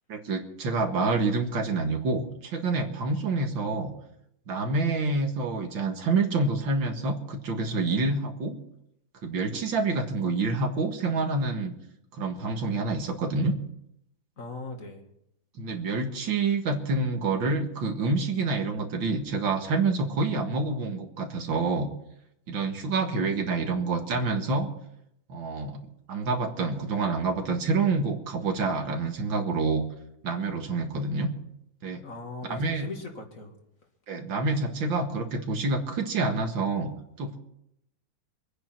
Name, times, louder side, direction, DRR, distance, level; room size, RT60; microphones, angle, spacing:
voice 1, 0.1-3.9 4.5-8.6 9.2-11.7 12.1-13.5 15.6-21.9 22.5-24.7 25.3-25.8 26.1-29.8 30.2-31.3 31.8-32.0 32.5-32.9 34.1-37.4, right 3 dB, 85° right, 4 dB, 2.5 m, -27 dB
voice 2, 14.4-15.0 32.0-33.5, left 3 dB, 45° left, 2 dB, 2.4 m, -39 dB
25.0 x 9.6 x 4.5 m, 0.78 s
omnidirectional pair, 2.0 m